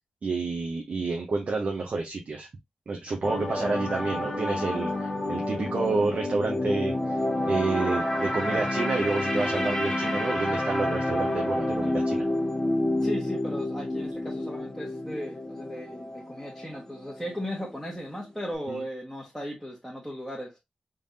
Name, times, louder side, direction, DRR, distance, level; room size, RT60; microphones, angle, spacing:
voice 1, 0.2-2.5 2.9-7.2 7.5-12.2 18.7-18.8, right 3 dB, 65° right, 0.8 m, -29 dB
sound 1, 3.2-17.4 17.7-17.9, left 1 dB, 25° left, 1.2 m, -29 dB
voice 2, 13.0-20.6, equal, ahead, 1.4 m, -37 dB
3.7 x 3.4 x 2.7 m
wide cardioid pair, 80°, 3 cm